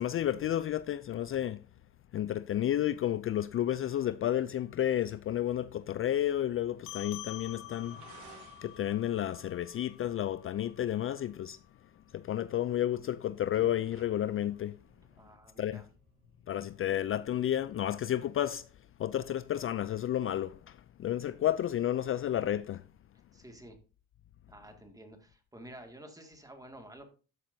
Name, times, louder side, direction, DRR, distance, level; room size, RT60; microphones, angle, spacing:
voice 1, 0.0-1.6 2.1-8.3 8.6-11.6 12.1-14.8 15.6-15.8 16.5-18.7 19.0-22.8, left 11 dB, 45° left, 0.4 m, -31 dB
sound 1, 4.6-18.6, right 4 dB, 75° right, 2.8 m, -63 dB
sound 2, 6.9-11.6, left 12 dB, 85° left, 1.1 m, -48 dB
sound 3, 13.5-17.8 18.1-18.2 19.0-19.1, right 2 dB, 45° right, 4.3 m, -62 dB
voice 2, 15.1-15.9 23.3-23.8 24.5-27.1, right 1 dB, 10° right, 2.1 m, -51 dB
12.5 x 7.3 x 2.7 m
cardioid pair, 90°, 30 cm